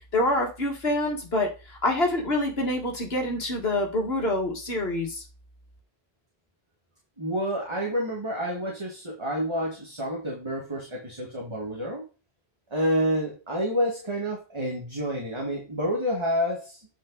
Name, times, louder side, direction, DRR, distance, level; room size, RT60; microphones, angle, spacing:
voice 1, 0.1-5.2, left 1 dB, 70° left, 1 dB, 2.3 m, -26 dB
voice 2, 7.2-12.1 12.7-16.9, equal, 25° right, -2 dB, 1.9 m, -29 dB
8.7 x 5.3 x 4.0 m, 0.32 s
omnidirectional pair, 1.1 m